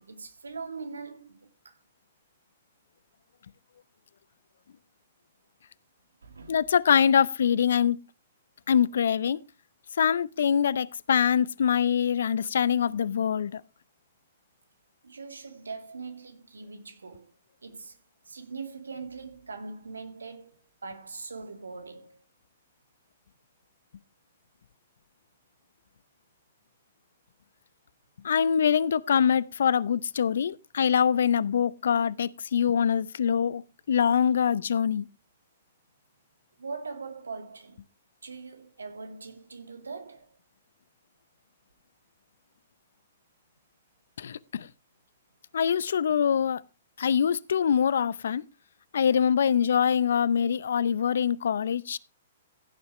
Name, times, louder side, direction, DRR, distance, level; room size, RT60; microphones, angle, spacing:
voice 1, 0.0-1.8 6.2-6.7 15.0-17.3 17.6-18.0 18.2-22.2 36.6-37.8 38.2-40.3, right 4 dB, 85° right, 2.2 m, -41 dB
voice 2, 6.5-8.0 8.7-9.4 10.0-13.6 28.2-33.6 33.9-35.1 44.2-44.7 45.5-46.6 47.0-48.4 48.9-52.0, left 8 dB, 70° left, 0.6 m, -24 dB
16.0 x 9.4 x 3.1 m
hypercardioid pair, 120°, 0 cm